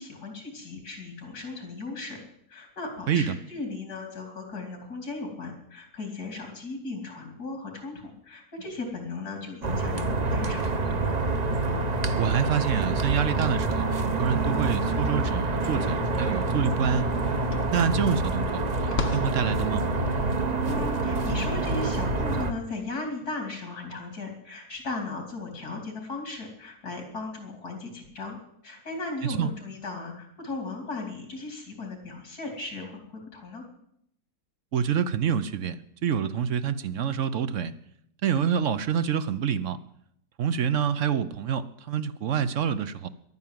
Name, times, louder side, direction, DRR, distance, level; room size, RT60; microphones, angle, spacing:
voice 1, 0.0-2.2 2.5-11.2 20.6-28.4 28.6-33.6, left 3 dB, 90° left, 3 dB, 3.5 m, -37 dB
sound 1, 9.6-22.5, right 2 dB, 35° right, 0.9 m, -27 dB
voice 2, 12.2-17.1 17.7-19.8 29.2-29.5 34.7-35.8 36.0-37.7 38.2-39.8 40.4-43.1, right 8 dB, 60° right, 13 dB, 1.0 m, -27 dB
sound 2, 16.8-22.9, left 4 dB, 55° left, 1.2 m, -39 dB
11.5 x 9.5 x 9.3 m, 0.73 s
omnidirectional pair, 1.6 m